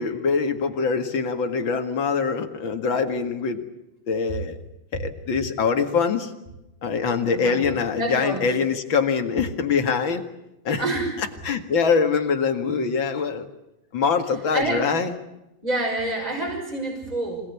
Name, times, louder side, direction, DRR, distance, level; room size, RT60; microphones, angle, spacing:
voice 1, 0.0-3.6 4.1-4.6 4.9-6.3 6.8-10.2 10.6-10.9 11.4-13.5 13.9-15.1, left 5 dB, 45° left, 6 dB, 2.3 m, -23 dB
voice 2, 8.0-8.5 10.8-11.1 14.5-14.9 15.6-17.4, right 2 dB, 10° right, 2 dB, 5.9 m, -27 dB
26.5 x 18.5 x 8.4 m, 0.93 s
omnidirectional pair, 3.5 m